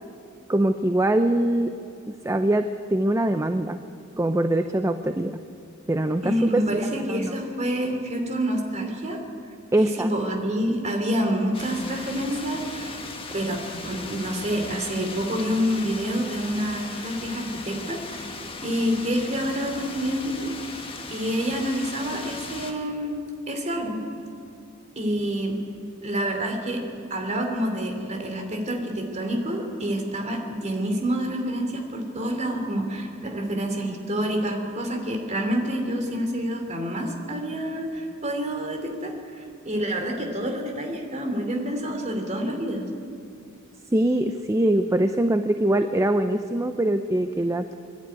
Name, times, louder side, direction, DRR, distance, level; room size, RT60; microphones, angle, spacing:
voice 1, 0.5-1.7 2.2-3.8 4.2-5.4 5.9-7.4 9.7-10.1 43.9-47.7, right 1 dB, 15° right, 8 dB, 0.6 m, -23 dB
voice 2, 6.2-9.2 9.8-13.0 13.3-13.6 13.8-20.5 21.1-23.2 23.5-24.0 25.0-25.6 26.0-26.8 27.1-42.8, equal, 35° right, 3 dB, 3.0 m, -27 dB
sound 1, 11.5-22.7, left 3 dB, 25° left, 1.7 m, -38 dB
25.0 x 11.5 x 9.5 m, 2.4 s
head